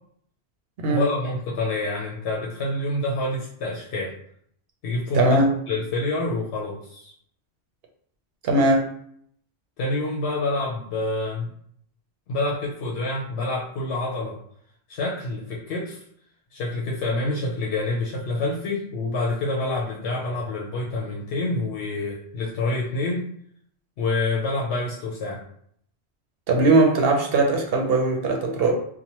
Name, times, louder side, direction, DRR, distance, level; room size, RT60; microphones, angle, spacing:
voice 1, 0.9-4.1 4.8-5.4 5.7-7.1 9.8-11.5 12.3-14.4 14.9-16.0 16.5-23.3 24.0-25.4, left 2 dB, 90° left, -3 dB, 0.8 m, -27 dB
voice 2, 5.1-5.5 8.4-8.9 26.5-28.7, right 2 dB, 70° right, 2 dB, 0.8 m, -20 dB
2.9 x 2.1 x 2.8 m, 0.65 s
omnidirectional pair, 1.1 m